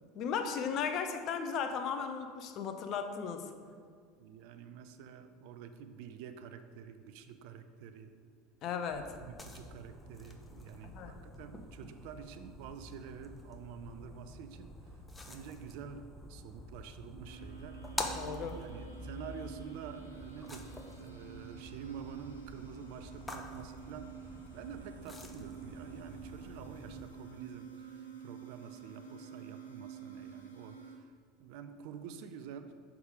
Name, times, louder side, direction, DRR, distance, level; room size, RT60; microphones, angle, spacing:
voice 1, 0.1-3.5 8.6-9.1 10.9-11.2 18.1-18.6, left 6 dB, 50° left, 6 dB, 0.6 m, -36 dB
voice 2, 4.2-8.2 8.9-14.7 15.3-18.1 18.5-31.1 31.4-32.7, right 7 dB, 60° right, 9 dB, 0.4 m, -48 dB
sound 1, 8.9-27.0, left 1 dB, 15° left, 0.7 m, -47 dB
sound 2, 17.2-31.0, right 7 dB, 90° left, 0.8 m, -50 dB
6.2 x 3.6 x 4.9 m, 2.1 s
hypercardioid pair, 75°, 0 cm